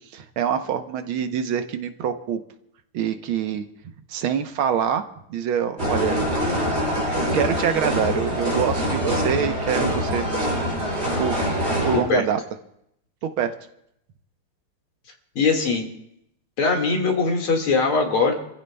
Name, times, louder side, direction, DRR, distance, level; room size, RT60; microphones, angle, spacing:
voice 1, 0.1-2.4 2.9-3.7 4.1-5.0 5.3-6.2 6.7-6.9 7.3-10.3 11.2-11.4 11.8-12.4 13.2-13.5, right 8 dB, 75° right, 8 dB, 1.7 m, -25 dB
sound 1, 5.8-12.0, equal, 30° right, 6.4 m, -24 dB
voice 2, 15.4-15.8 16.6-18.3, left 4 dB, 80° left, 2 dB, 2.9 m, -21 dB
28.0 x 15.0 x 2.3 m, 0.76 s
omnidirectional pair, 2.4 m